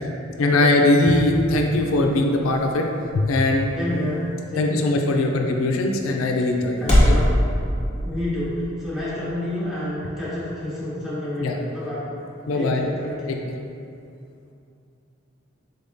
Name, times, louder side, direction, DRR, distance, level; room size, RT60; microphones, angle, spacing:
voice 1, 0.4-2.9 3.1-3.7 4.6-6.8 7.1-7.2 11.4-11.6 12.5-12.8, left 2 dB, 90° left, 2 dB, 0.4 m, -20 dB
sound 1, 1.0-7.2, equal, 30° left, 1.0 m, -26 dB
voice 2, 3.7-5.0 5.3-5.4 6.8-7.4 7.8-12.1 12.5-13.4, left 1 dB, ahead, -10 dB, 0.9 m, -29 dB
3.9 x 3.5 x 2.6 m, 2.7 s
head